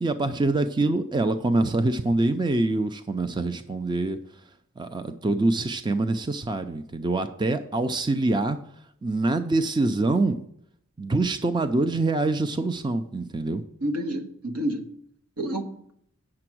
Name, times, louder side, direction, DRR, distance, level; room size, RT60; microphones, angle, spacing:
voice 1, 0.0-4.2 4.8-8.6 9.0-10.4 11.0-13.6, right 2 dB, 20° right, 9 dB, 0.4 m, -25 dB
voice 2, 13.8-14.9 15.4-15.9, equal, 80° right, 4 dB, 1.4 m, -29 dB
8.7 x 6.9 x 6.1 m, 0.69 s
head